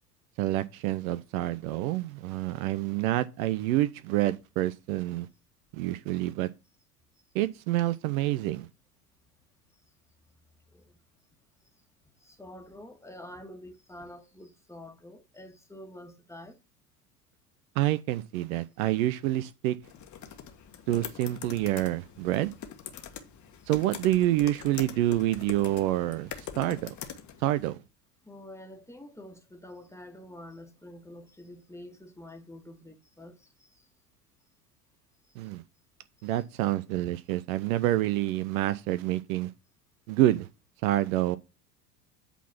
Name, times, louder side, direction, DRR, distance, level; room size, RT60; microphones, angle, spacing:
voice 1, 0.4-5.3 5.7-6.5 7.3-8.7 17.8-19.8 20.9-22.5 23.7-26.3 26.6-26.9 27.4-27.8 35.4-35.6 36.2-39.5 40.1-40.5 40.8-41.4, right 15 dB, 60° right, 0.8 m, -27 dB
voice 2, 12.2-16.6 28.2-33.8, left 1 dB, 5° left, 1.7 m, -47 dB
sound 1, 19.8-27.7, left 9 dB, 35° left, 1.5 m, -43 dB
8.3 x 4.0 x 5.8 m
hypercardioid pair, 80°, 47 cm